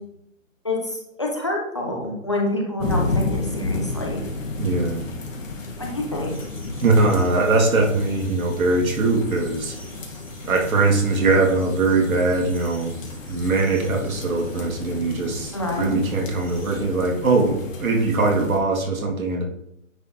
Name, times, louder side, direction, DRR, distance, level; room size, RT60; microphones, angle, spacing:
voice 1, 0.6-4.2 5.8-6.3 15.5-16.0, left 1 dB, 20° left, 0 dB, 0.7 m, -27 dB
sound 1, 2.8-18.6, left 3 dB, 65° left, 1.9 m, -32 dB
voice 2, 4.6-5.0 6.8-9.7 10.4-13.0 13.3-19.4, right 3 dB, 90° right, 1 dB, 2.4 m, -21 dB
sound 2, 6.3-16.8, right 1 dB, 5° right, 1.9 m, -49 dB
9.6 x 4.4 x 3.9 m, 0.77 s
hypercardioid pair, 180°, 41 cm